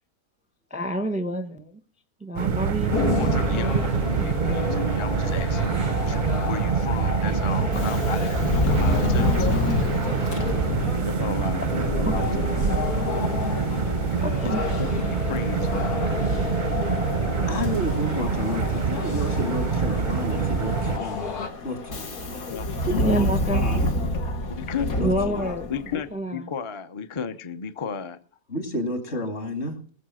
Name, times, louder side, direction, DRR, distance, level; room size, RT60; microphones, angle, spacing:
voice 1, 0.7-1.7 2.2-3.4 4.2-4.8 12.0-12.1 14.2-14.6 23.0-23.9 25.0-25.7 26.1-26.4, right 1 dB, 5° right, 0.7 m, -28 dB
sound 1, 2.4-21.0, right 6 dB, 45° right, 0.7 m, -26 dB
sound 2, 2.9-21.5, left 5 dB, 90° left, 2.0 m, -31 dB
voice 2, 3.0-9.7 11.0-12.8 14.4-16.0 22.5-22.7 24.6-24.9 25.7-28.2, left 6 dB, 30° left, 0.6 m, -34 dB
Subway metro underground, 7.6-26.0, left 1 dB, 70° left, 2.0 m, -30 dB
voice 3, 17.5-21.3 21.6-22.5 22.9-23.9 25.0-25.6 28.5-29.8, left 1 dB, 45° left, 2.6 m, -31 dB
20.0 x 7.3 x 6.3 m
omnidirectional pair, 1.6 m